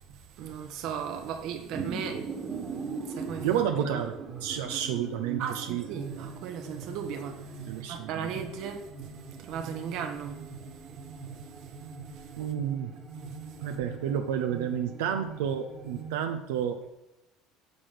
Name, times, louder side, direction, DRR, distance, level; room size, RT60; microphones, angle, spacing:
voice 1, 0.4-2.3 3.1-3.6 3.9-4.0 5.4-7.4 7.9-8.8 9.4-10.4, right 7 dB, 65° right, 1.3 m, -36 dB
sound 1, 1.4-16.1, right 5 dB, 35° right, 1.6 m, -41 dB
voice 2, 3.4-4.1 4.4-5.8 7.7-8.3 12.4-12.9 13.6-16.9, right 9 dB, 90° right, 0.7 m, -30 dB
9.6 x 5.0 x 6.0 m
supercardioid pair, 95°, 0 cm